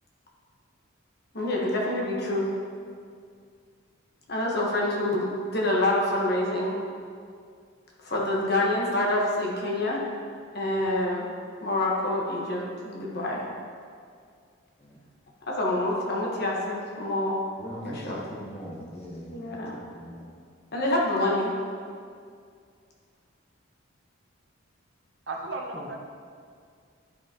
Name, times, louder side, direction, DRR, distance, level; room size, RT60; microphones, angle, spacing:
voice 1, 1.3-2.5 4.3-6.8 8.0-10.0 10.5-11.3 11.6-13.4 15.5-17.4 17.8-18.2 19.3-19.8 20.7-21.5, left 1 dB, 50° left, -3 dB, 1.2 m, -27 dB
voice 2, 17.6-20.3 25.7-25.9, equal, 30° left, -3 dB, 1.2 m, -41 dB
voice 3, 25.3-26.0, right 2 dB, 55° right, 2 dB, 0.7 m, -34 dB
9.9 x 5.6 x 2.9 m, 2.2 s
head